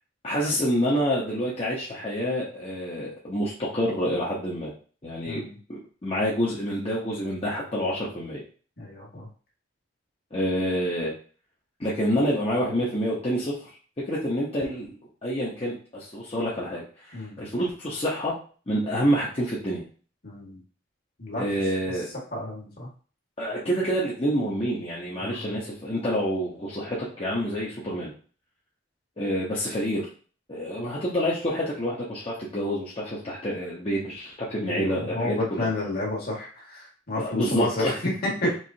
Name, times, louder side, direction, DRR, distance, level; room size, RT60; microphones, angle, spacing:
voice 1, 0.2-4.7 5.0-5.4 6.0-8.4 10.3-11.1 11.8-13.5 14.0-14.9 15.2-18.4 18.7-19.8 21.4-22.1 23.4-28.1 29.2-30.1 30.5-35.7 37.2-37.9 38.4-38.5, equal, 30° left, -7 dB, 0.9 m, -27 dB
voice 2, 5.2-5.6 8.8-9.3 17.1-17.4 20.2-20.6 21.2-22.0 22.3-22.9 25.2-25.5 34.6-38.5, left 2 dB, 50° left, -3 dB, 1.7 m, -31 dB
4.8 x 3.3 x 2.8 m, 0.40 s
head